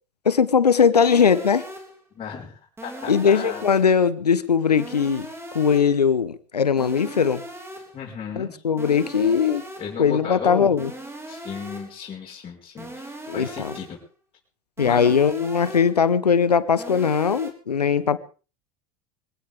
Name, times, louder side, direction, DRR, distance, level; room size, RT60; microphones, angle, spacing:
voice 1, 0.2-1.6 3.1-5.3 5.5-7.4 8.4-9.6 10.0-10.9 13.3-13.7 14.8-18.2, left 6 dB, 85° left, 1.1 m, -20 dB
sound 1, 0.9-2.0 2.8-4.0 4.8-6.0 6.8-8.0 8.8-10.0 10.8-12.0 12.8-14.0 14.8-16.0 16.8-17.5, right 1 dB, 10° right, 3.6 m, -39 dB
voice 2, 2.1-3.7 7.9-8.6 9.8-10.7 11.3-14.0 14.8-15.1, left 7 dB, 30° left, 5.9 m, -34 dB
22.5 x 16.5 x 3.6 m
figure-of-eight pair, 75°, 20 cm